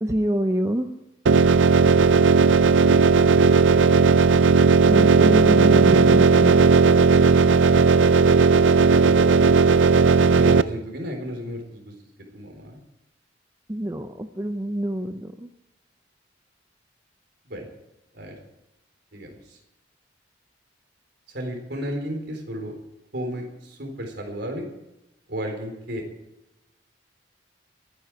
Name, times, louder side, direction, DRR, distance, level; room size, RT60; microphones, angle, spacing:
voice 1, 0.0-0.9 4.8-6.6 13.7-15.5, right 1 dB, 15° right, 7 dB, 0.6 m, -26 dB
sound 1, 1.3-10.6, right 5 dB, 90° right, 0.5 m, -16 dB
voice 2, 10.3-11.9 12.3-12.8 17.5-17.7 18.1-18.4 19.1-19.6 21.3-22.7 23.1-24.7 25.3-26.0, equal, 60° right, 2 dB, 4.0 m, -34 dB
24.0 x 9.7 x 4.8 m, 0.93 s
head